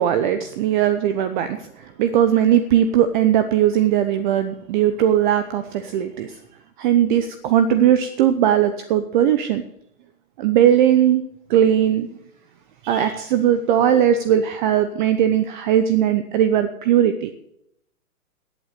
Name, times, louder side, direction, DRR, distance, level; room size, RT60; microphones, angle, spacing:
voice 1, 0.0-6.4 6.8-9.6 10.4-11.2 11.5-12.1 12.8-17.3, right 10 dB, 35° right, 10 dB, 0.8 m, -19 dB
14.5 x 8.4 x 6.6 m, 0.78 s
hypercardioid pair, 125°, 45 cm